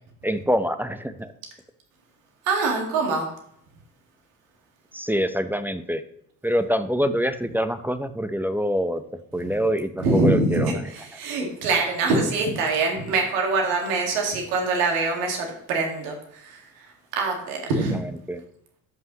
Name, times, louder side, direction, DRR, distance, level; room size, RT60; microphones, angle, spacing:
voice 1, 0.2-1.3 4.9-6.0 6.4-9.0 9.3-10.8 17.9-18.4, equal, 5° right, 10 dB, 0.7 m, -25 dB
voice 2, 2.5-3.3 10.0-16.6 17.1-18.0, right 3 dB, 75° right, 1 dB, 2.0 m, -24 dB
13.5 x 5.5 x 3.0 m, 0.69 s
hypercardioid pair, 50°, 46 cm